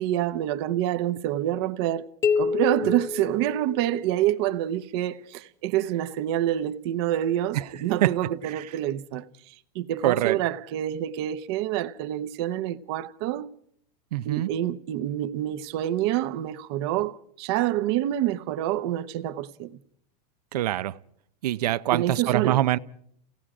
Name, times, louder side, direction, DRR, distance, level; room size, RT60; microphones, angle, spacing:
voice 1, 0.0-2.0 2.4-13.5 14.2-19.8 21.9-22.6, right 12 dB, 40° right, 0.9 m, -27 dB
sound 1, 2.2-4.2, left 5 dB, 15° left, 0.8 m, -27 dB
voice 2, 10.0-10.4 14.1-14.5 20.5-21.0 21.4-22.8, right 13 dB, 70° right, 0.8 m, -24 dB
29.5 x 18.0 x 5.0 m
supercardioid pair, 170°, 21 cm